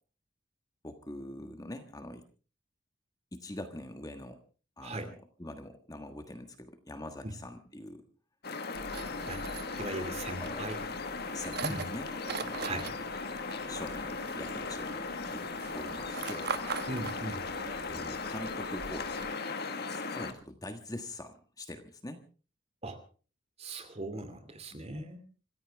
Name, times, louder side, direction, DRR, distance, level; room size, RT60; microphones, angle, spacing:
voice 1, 0.8-2.2 3.3-4.4 4.8-8.0 9.0-9.3 10.4-10.7 11.3-12.7 13.7-15.5 15.7-16.5 17.9-19.4 19.9-22.2, left 1 dB, 20° left, 7 dB, 1.4 m, -44 dB
voice 2, 4.8-5.1 7.2-7.4 9.3-9.4 9.7-10.8 11.6-11.8 12.6-12.9 16.9-17.4 22.8-23.0 23.6-25.2, right 1 dB, 30° right, 9 dB, 2.5 m, -38 dB
sound 1, 8.4-20.3, left 4 dB, 50° left, 1.6 m, -37 dB
sound 2, 8.7-19.3, right 4 dB, 50° right, 1.1 m, -42 dB
26.0 x 15.0 x 3.5 m, 0.37 s
head